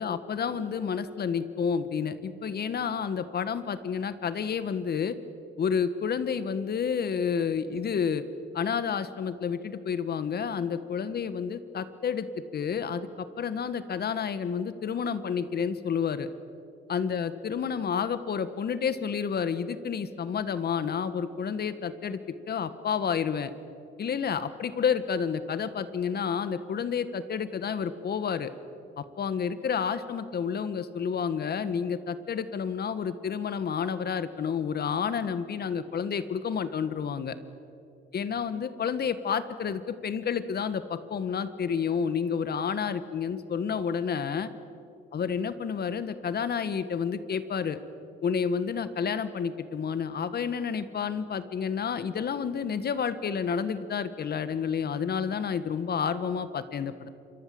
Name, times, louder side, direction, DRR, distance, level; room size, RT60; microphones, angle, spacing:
voice 1, 0.0-5.2 5.6-8.2 8.5-16.3 16.9-23.5 24.0-28.5 29.0-37.4 38.1-44.5 45.1-47.8 48.2-57.1, left 6 dB, 55° left, 13 dB, 1.6 m, -30 dB
27.5 x 23.0 x 7.8 m, 2.7 s
cardioid pair, 90°, 20 cm